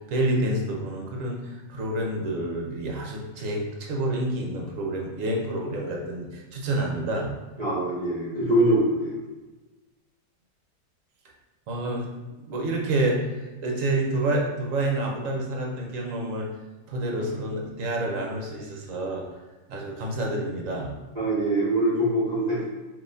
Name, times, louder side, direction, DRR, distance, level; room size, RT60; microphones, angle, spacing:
voice 1, 0.1-7.3 11.7-16.5 16.9-19.2 19.7-20.9, right 1 dB, 55° right, 0 dB, 1.0 m, -28 dB
voice 2, 7.6-9.2 21.2-22.7, right 1 dB, 30° right, -9 dB, 0.8 m, -23 dB
5.2 x 2.9 x 2.7 m, 1.2 s
omnidirectional pair, 1.9 m